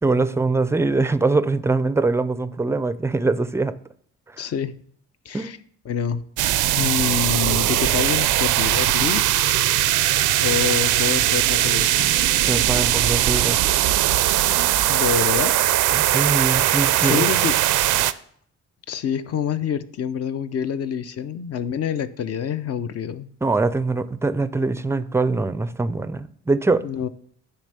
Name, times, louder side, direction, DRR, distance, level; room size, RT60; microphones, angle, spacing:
voice 1, 0.0-3.8 5.3-5.5 12.4-13.6 15.9-17.3 23.4-26.8, right 3 dB, 10° right, 0.4 m, -23 dB
voice 2, 4.4-4.7 5.3-5.6 5.9-6.2 6.8-9.6 10.4-12.1 14.9-15.5 17.0-17.6 18.9-23.3 26.8-27.1, left 8 dB, 55° left, 0.6 m, -26 dB
sound 1, 6.4-18.1, right 14 dB, 80° right, 0.5 m, -20 dB
9.8 x 3.5 x 6.6 m
cardioid pair, 90°, 30 cm